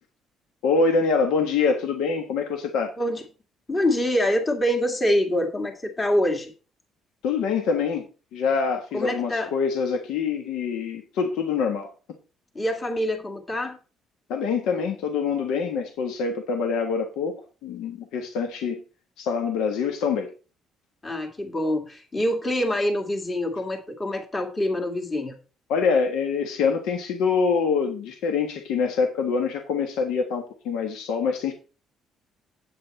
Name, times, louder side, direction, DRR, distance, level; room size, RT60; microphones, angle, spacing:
voice 1, 0.6-2.9 7.2-8.0 8.3-11.9 14.3-17.3 17.6-18.8 19.2-20.3 25.7-31.5, left 5 dB, 85° left, 4 dB, 1.4 m, -25 dB
voice 2, 3.7-6.5 8.9-9.5 12.6-13.8 21.0-25.3, left 1 dB, 25° left, 3 dB, 2.0 m, -25 dB
8.7 x 7.9 x 4.1 m, 0.34 s
cardioid pair, 120°, 0 cm